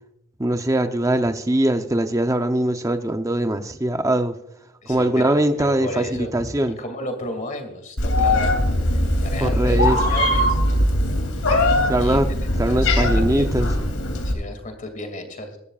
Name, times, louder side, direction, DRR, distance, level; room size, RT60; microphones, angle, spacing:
voice 1, 0.4-4.4 4.9-6.8 9.4-10.0 11.9-12.3 12.5-13.7, right 1 dB, 15° right, 0.7 m, -21 dB
voice 2, 4.8-6.5 6.8-8.5 8.9-10.6 11.9-12.2 12.7-13.5 14.2-15.6, left 1 dB, 35° left, 2.4 m, -33 dB
Meow, 8.0-14.3, left 1 dB, 80° left, 2.9 m, -20 dB
21.5 x 12.0 x 2.4 m
head